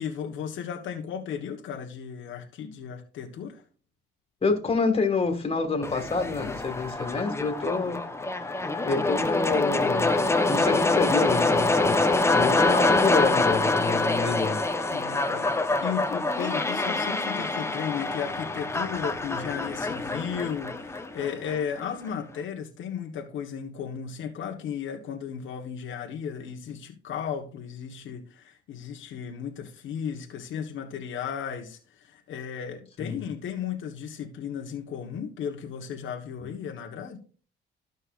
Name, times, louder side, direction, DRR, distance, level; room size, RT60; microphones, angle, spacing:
voice 1, 0.0-3.6 14.9-37.2, left 8 dB, 80° left, 1.4 m, -35 dB
voice 2, 4.4-8.0 8.8-12.0 12.3-14.6 33.0-33.2, left 4 dB, 30° left, 2.1 m, -27 dB
sound 1, 5.8-21.8, left 2 dB, 15° left, 1.0 m, -25 dB
14.5 x 5.5 x 2.5 m
cardioid pair, 90°, 20 cm